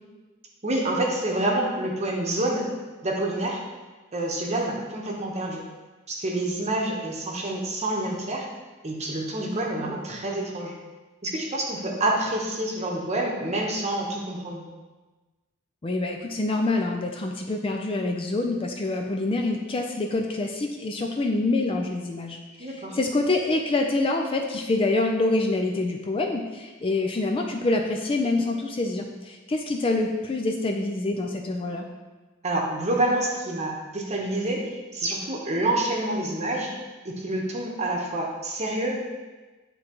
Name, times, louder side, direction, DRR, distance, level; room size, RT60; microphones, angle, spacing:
voice 1, 0.6-2.7 3.0-3.6 4.1-5.6 6.1-8.5 8.8-10.7 11.2-14.7 22.6-23.0 32.4-36.8 37.0-38.9, right 1 dB, 30° right, -1 dB, 1.0 m, -27 dB
voice 2, 15.8-22.4 22.7-31.9, left 2 dB, 25° left, 2 dB, 0.4 m, -26 dB
9.5 x 3.7 x 3.0 m, 1.2 s
head